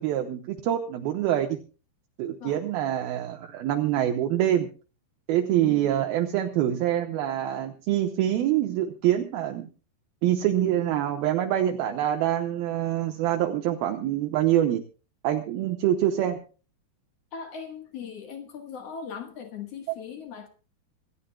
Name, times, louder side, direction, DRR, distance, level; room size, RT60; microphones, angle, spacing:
voice 1, 0.0-1.6 2.2-4.7 5.3-9.7 10.2-14.8 15.2-16.4 19.9-20.0, right 12 dB, 75° right, 2.4 m, -25 dB
voice 2, 17.3-20.5, left 6 dB, 85° left, 1.3 m, -39 dB
26.5 x 13.0 x 2.2 m
omnidirectional pair, 5.2 m